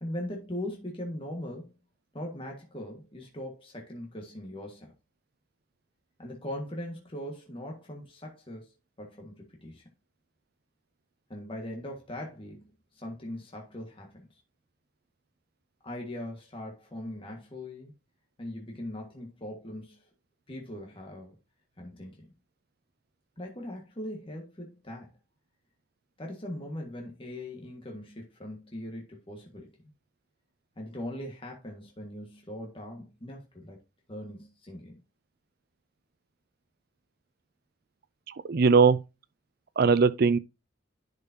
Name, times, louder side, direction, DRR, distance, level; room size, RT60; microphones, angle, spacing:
voice 1, 0.0-1.7 2.1-4.9 6.2-8.7 9.0-9.8 11.3-12.7 12.9-14.3 15.8-17.9 18.4-20.0 20.5-21.4 21.8-22.3 23.4-25.1 26.2-29.7 30.8-33.8 34.1-35.0, left 1 dB, 30° left, 1.6 m, -40 dB
voice 2, 38.4-39.0 39.8-40.4, right 5 dB, 55° right, 0.5 m, -20 dB
10.5 x 5.3 x 2.7 m
head